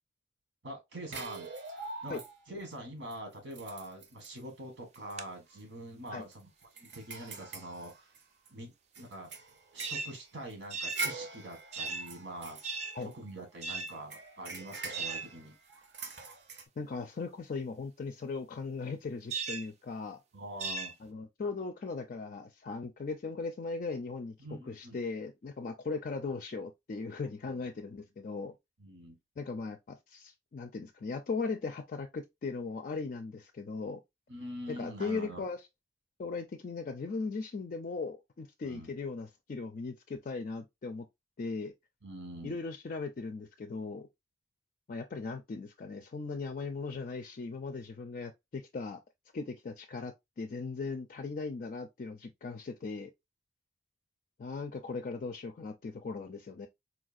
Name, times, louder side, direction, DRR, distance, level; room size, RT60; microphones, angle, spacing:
voice 1, 0.6-2.2 2.5-6.5 6.7-8.1 8.5-9.3 9.7-12.6 13.0-15.5 20.3-20.9 24.4-25.0 28.8-29.2 34.3-35.4 38.6-38.9 42.0-42.6, right 1 dB, 85° right, 1.5 m, -44 dB
sound 1, 1.1-2.6 3.1-3.2 3.5-4.4 4.9-5.1 5.5-5.6 6.1-8.5 8.9-13.4 13.9-16.6, right 4 dB, 65° right, 0.8 m, -43 dB
sound 2, 4.9-5.2 9.8-10.1 10.7-11.1 11.7-12.1 12.6-13.0 13.6-13.9 14.9-15.3 19.3-19.7 20.6-20.9, right 4 dB, 35° right, 0.4 m, -37 dB
voice 2, 16.8-20.2 21.0-28.5 29.4-34.0 34.7-35.7 36.2-41.1 41.4-41.7 42.4-44.1 44.9-49.0 49.3-53.1 54.4-56.7, left 4 dB, 45° left, 0.4 m, -38 dB
4.3 x 2.4 x 2.5 m
head